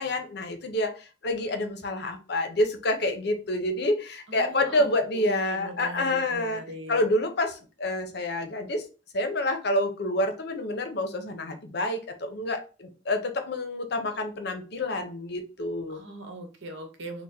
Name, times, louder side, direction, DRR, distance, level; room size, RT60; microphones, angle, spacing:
voice 1, 0.0-6.6 6.9-8.8 9.1-16.0, left 1 dB, 60° left, 7 dB, 0.6 m, -28 dB
voice 2, 4.3-7.0 15.9-17.2, right 1 dB, 75° right, 4 dB, 0.9 m, -40 dB
3.4 x 2.1 x 4.1 m, 0.34 s
head